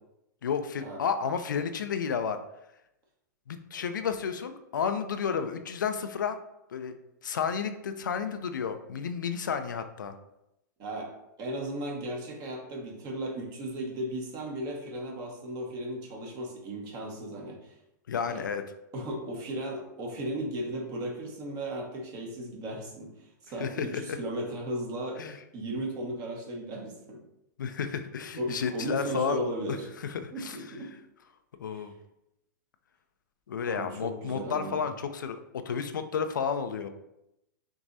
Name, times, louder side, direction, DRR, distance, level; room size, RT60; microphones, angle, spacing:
voice 1, 0.4-2.4 3.5-6.4 6.7-6.9 7.2-10.1 18.1-18.6 23.6-24.2 25.2-25.4 27.6-29.4 29.7-30.6 31.6-31.9 33.5-36.9, left 6 dB, 80° left, 8 dB, 0.5 m, -31 dB
voice 2, 10.8-17.7 18.3-18.4 18.9-25.3 25.5-27.2 28.4-29.9 30.3-30.9 31.7-31.9 33.7-34.8, right 1 dB, 40° right, 0 dB, 1.4 m, -36 dB
6.1 x 3.0 x 2.7 m, 0.86 s
hypercardioid pair, 110°, 10 cm